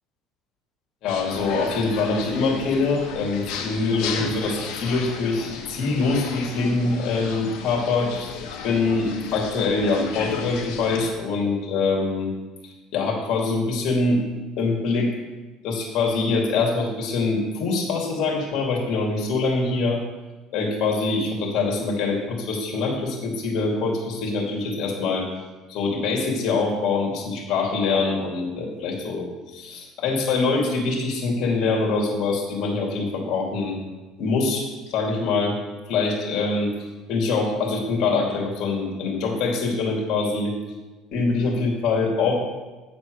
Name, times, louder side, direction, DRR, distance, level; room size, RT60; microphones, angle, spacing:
voice 1, 1.0-8.3 8.6-12.3 12.9-14.2 14.6-15.1 15.6-20.0 20.5-25.3 25.7-29.3 29.5-33.8 34.2-35.5 35.9-36.7 37.1-40.5 41.1-42.4, left 3 dB, 60° left, 0 dB, 2.4 m, -24 dB
sound 1, 1.1-11.1, left 6 dB, 75° left, 1.1 m, -34 dB
8.9 x 4.4 x 6.3 m, 1.2 s
cardioid pair, 120°, 0 cm